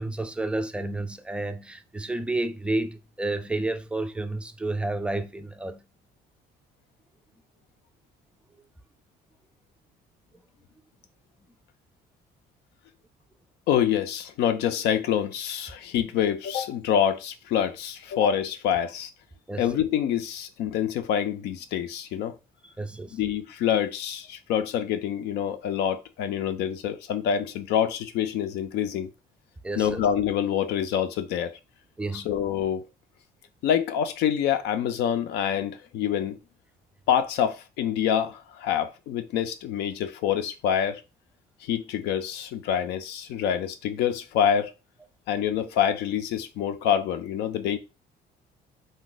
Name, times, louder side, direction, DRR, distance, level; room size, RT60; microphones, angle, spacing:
voice 1, 0.0-5.8 19.5-19.7 22.6-23.2 29.6-30.0 32.0-32.3, right 2 dB, 5° right, 0.3 m, -30 dB
voice 2, 13.7-19.1 19.6-22.3 23.1-29.1 29.8-31.6 32.1-32.8 33.6-36.4 37.1-41.0 41.6-44.7 45.3-47.8, left 9 dB, 80° left, 0.5 m, -26 dB
2.6 x 2.3 x 3.8 m
cardioid pair, 110°, 17 cm